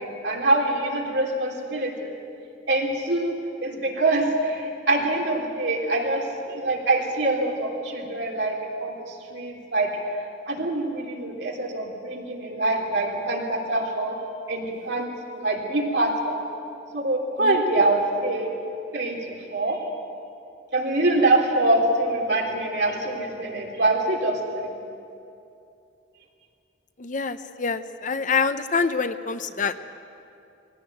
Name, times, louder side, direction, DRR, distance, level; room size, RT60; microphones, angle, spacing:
voice 1, 0.0-2.1 2.7-3.3 3.6-9.9 10.5-14.2 14.5-15.1 15.4-16.4 16.9-18.5 18.9-19.2 19.5-19.8 20.7-24.7, right 2 dB, 65° right, -1 dB, 3.5 m, -24 dB
voice 2, 27.0-29.9, left 5 dB, 45° left, 11 dB, 0.7 m, -26 dB
21.5 x 17.0 x 9.2 m, 2.6 s
head